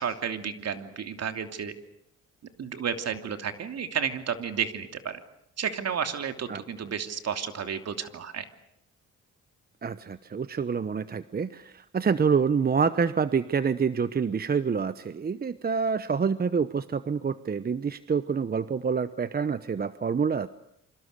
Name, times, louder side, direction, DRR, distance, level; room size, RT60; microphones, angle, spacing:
voice 1, 0.0-1.7 2.6-5.2 5.6-8.4, right 7 dB, 55° right, 7 dB, 2.9 m, -32 dB
voice 2, 9.8-20.5, right 6 dB, 30° right, 13 dB, 1.0 m, -27 dB
27.5 x 25.5 x 6.7 m, 0.76 s
cardioid pair, 90°, 30 cm